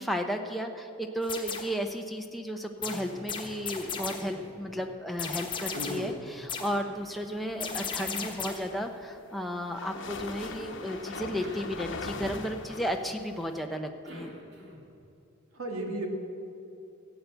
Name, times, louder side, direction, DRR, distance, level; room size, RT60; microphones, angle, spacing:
voice 1, 0.0-14.3, equal, ahead, 3 dB, 0.6 m, -34 dB
sound 1, 1.2-1.8 2.8-4.4 5.2-6.2 6.5-6.9 7.6-8.8, left 6 dB, 25° left, 1.2 m, -36 dB
Cough, 2.8-3.6 3.9-6.0 6.5-8.5 10.4-12.5 13.7-15.0, equal, 55° right, 2.4 m, -49 dB
voice 2, 5.7-6.1 15.5-16.1, right 1 dB, 85° right, 2 dB, 2.0 m, -34 dB
sound 2, 8.5-13.6, left 3 dB, 60° left, 1.0 m, -40 dB
15.5 x 8.2 x 7.9 m, 2.7 s
head